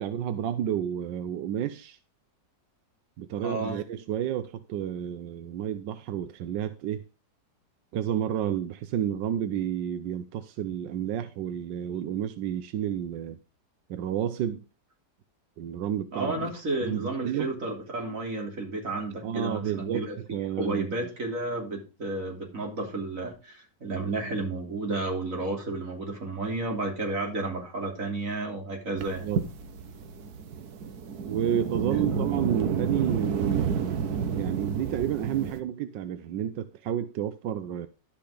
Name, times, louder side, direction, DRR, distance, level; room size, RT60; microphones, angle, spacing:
voice 1, 0.0-2.0 3.2-7.0 7.9-13.4 13.9-14.6 15.6-16.5 16.8-17.5 19.2-20.9 28.9-29.4 31.3-33.9 34.3-37.9, right 10 dB, 90° right, 1.4 m, -31 dB
voice 2, 3.4-3.8 16.1-20.2 20.6-29.3 31.9-32.0, right 2 dB, 50° right, 3.5 m, -32 dB
sound 1, 29.0-35.6, right 6 dB, 65° right, 1.5 m, -30 dB
12.0 x 5.8 x 5.1 m
omnidirectional pair, 1.9 m